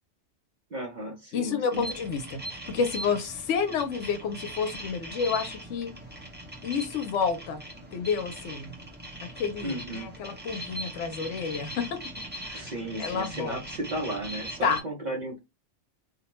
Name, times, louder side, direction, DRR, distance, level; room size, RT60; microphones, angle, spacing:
voice 1, 0.7-1.9 9.6-10.1 12.5-15.4, right 1 dB, 45° right, 0.7 m, -34 dB
voice 2, 1.3-5.9 6.6-7.6 7.9-8.7 9.2-12.0 12.4-12.7 13.0-13.6 14.6-14.8, left 6 dB, 80° left, 0.9 m, -30 dB
sound 1, 1.7-14.8, right 1 dB, 15° right, 0.4 m, -40 dB
2.5 x 2.2 x 3.0 m
omnidirectional pair, 1.2 m